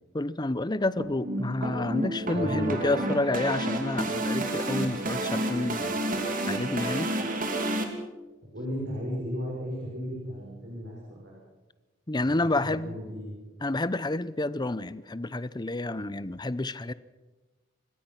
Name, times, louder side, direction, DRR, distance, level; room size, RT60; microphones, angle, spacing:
voice 1, 0.1-6.0 6.5-7.1 12.1-13.0 13.6-16.9, left 2 dB, 25° left, 17 dB, 0.7 m, -29 dB
sound 1, 1.0-7.8, right 1 dB, 50° right, 2.8 m, -30 dB
voice 2, 2.3-2.7 8.5-11.4 12.2-13.3, equal, 70° right, -4 dB, 6.7 m, -35 dB
28.5 x 15.5 x 6.0 m, 1.2 s
head